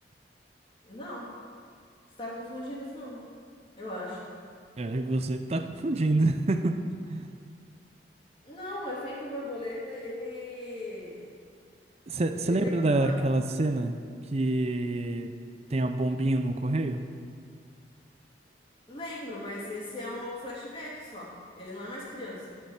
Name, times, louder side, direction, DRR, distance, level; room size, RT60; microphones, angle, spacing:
voice 1, 0.8-1.3 2.2-3.2 3.8-4.3 8.4-11.2 12.4-13.2 18.9-22.6, left 1 dB, 30° left, -6 dB, 2.9 m, -38 dB
voice 2, 4.8-6.8 7.1-7.3 12.1-14.0 14.3-15.4 15.7-17.1, right 2 dB, 35° right, 8 dB, 0.5 m, -27 dB
11.5 x 6.8 x 7.1 m, 2.1 s
head